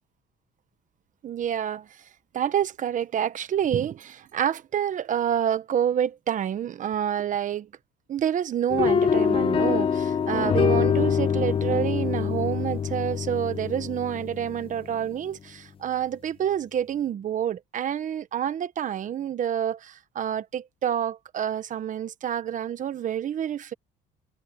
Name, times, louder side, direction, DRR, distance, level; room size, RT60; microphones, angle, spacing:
voice 1, 1.2-2.0 2.3-7.7 8.1-23.7, right 9 dB, 50° right, 1.2 m, -28 dB
sound 1, 8.7-15.0, left 7 dB, 30° left, 0.8 m, -25 dB
cardioid pair, 110°, 17 cm